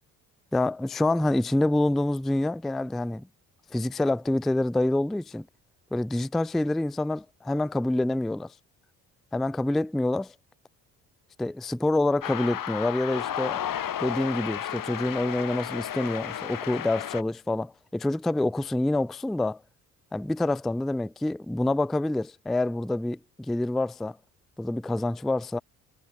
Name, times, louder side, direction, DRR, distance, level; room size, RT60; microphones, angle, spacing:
voice 1, 0.5-3.3 3.7-5.5 5.9-8.5 9.3-10.3 11.4-13.6 14.0-19.6 20.1-24.2 24.6-25.6, left 2 dB, ahead, 0.3 m, -27 dB
sound 1, 12.2-17.2, left 10 dB, 45° left, 2.2 m, -33 dB
figure-of-eight pair, 45°, 47 cm